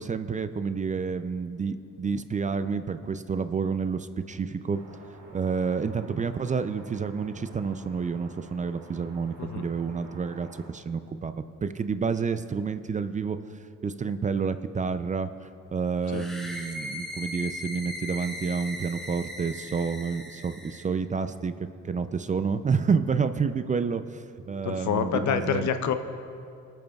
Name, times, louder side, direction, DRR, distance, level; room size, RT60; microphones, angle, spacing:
voice 1, 0.0-4.8 5.3-11.3 11.6-13.4 13.8-25.6, right 5 dB, 25° right, 11 dB, 0.4 m, -29 dB
sound 1, 4.7-10.7, right 2 dB, 90° right, 2.6 m, -50 dB
sound 2, 16.0-20.9, left 1 dB, ahead, 2.3 m, -38 dB
voice 2, 24.6-25.9, left 8 dB, 70° left, 9 dB, 0.7 m, -27 dB
24.5 x 9.1 x 2.3 m, 2.5 s
cardioid pair, 90°, 30 cm